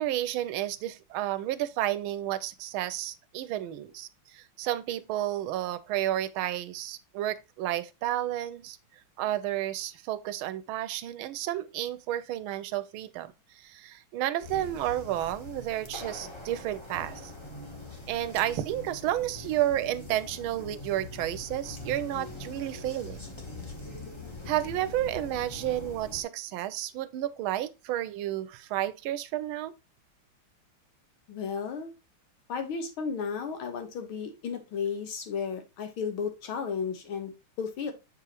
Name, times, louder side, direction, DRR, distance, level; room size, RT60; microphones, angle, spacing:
voice 1, 0.0-8.8 9.2-13.3 13.6-17.2 18.1-23.2 24.5-29.7, right 13 dB, 80° right, 1.4 m, -31 dB
sound 1, 14.4-26.2, left 2 dB, 20° left, 0.8 m, -43 dB
voice 2, 31.3-31.9 32.5-37.9, left 6 dB, 80° left, 2.0 m, -34 dB
7.1 x 4.9 x 2.9 m
omnidirectional pair, 2.3 m